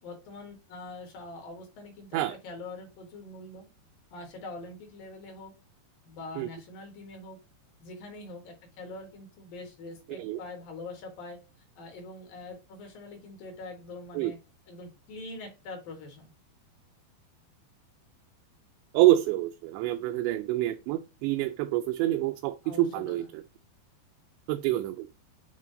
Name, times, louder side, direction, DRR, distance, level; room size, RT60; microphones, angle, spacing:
voice 1, 0.0-3.7 4.1-5.5 6.1-7.4 7.8-11.4 11.8-14.4 14.7-16.3 22.6-23.3, left 2 dB, 60° left, 2.8 m, -44 dB
voice 2, 18.9-23.2 24.5-25.1, right 15 dB, 85° right, 2.6 m, -26 dB
8.2 x 3.4 x 3.8 m
omnidirectional pair, 5.2 m